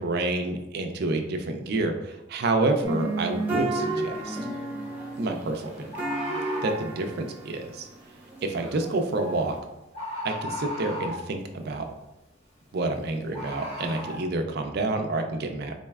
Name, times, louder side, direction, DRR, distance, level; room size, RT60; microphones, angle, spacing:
voice 1, 0.0-4.4 5.2-5.9 6.6-7.9 8.4-9.6 10.2-11.9 12.7-15.7, right 2 dB, 55° right, 5 dB, 0.4 m, -28 dB
sound 1, 2.8-9.6, right 2 dB, 10° right, 0.8 m, -33 dB
Bird, 4.2-4.3 5.9-6.9 9.1-9.4 9.9-11.3 13.3-14.2, left 1 dB, 35° left, 1.0 m, -35 dB
4.1 x 3.1 x 2.3 m, 0.98 s
head